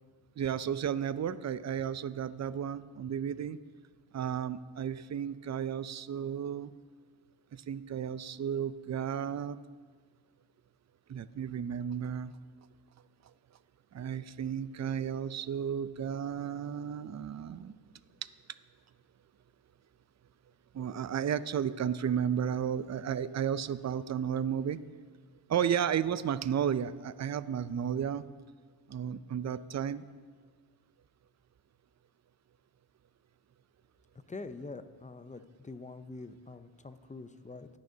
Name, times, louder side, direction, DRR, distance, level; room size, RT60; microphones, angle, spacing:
voice 1, 0.4-3.6 4.1-6.7 7.5-9.6 11.1-12.3 13.9-17.7 18.2-18.3 20.7-24.8 25.5-28.2 28.9-30.0, right 8 dB, 35° right, 16 dB, 0.5 m, -33 dB
voice 2, 34.3-37.7, left 3 dB, 15° left, 11 dB, 0.6 m, -45 dB
17.5 x 6.4 x 2.8 m, 1.6 s
supercardioid pair, 50°, 49 cm